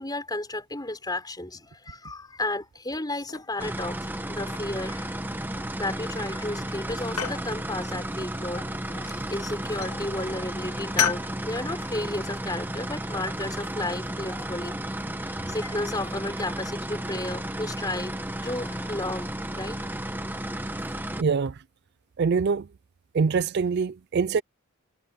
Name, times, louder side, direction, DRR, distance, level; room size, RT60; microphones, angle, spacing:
voice 1, 0.0-5.2 5.5-14.8 15.2-19.9, left 2 dB, 20° left, 5.5 m, -33 dB
sound 1, 3.3-4.0 4.4-5.0 5.8-6.3 6.6-7.5 8.9-9.4 9.8-10.0 11.0-11.3, left 8 dB, 90° left, 2.2 m, -31 dB
sound 2, 3.6-21.2, right 1 dB, 10° right, 1.3 m, -33 dB
voice 2, 21.2-21.6 22.2-22.7 23.1-24.4, right 5 dB, 50° right, 0.4 m, -24 dB
head